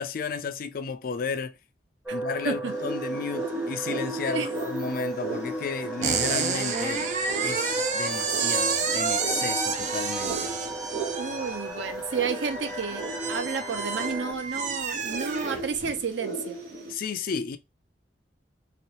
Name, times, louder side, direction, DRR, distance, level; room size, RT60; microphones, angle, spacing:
voice 1, 0.0-1.6 2.1-7.1 7.4-10.6 16.9-17.6, left 5 dB, 50° left, 0.3 m, -33 dB
sound 1, 2.1-14.3, right 2 dB, 5° right, 0.8 m, -36 dB
sound 2, 2.7-16.9, right 2 dB, 55° right, 1.1 m, -37 dB
sound 3, 6.0-16.0, right 5 dB, 40° right, 0.5 m, -30 dB
voice 2, 11.1-16.6, right 5 dB, 85° right, 0.6 m, -31 dB
3.0 x 3.0 x 3.0 m
head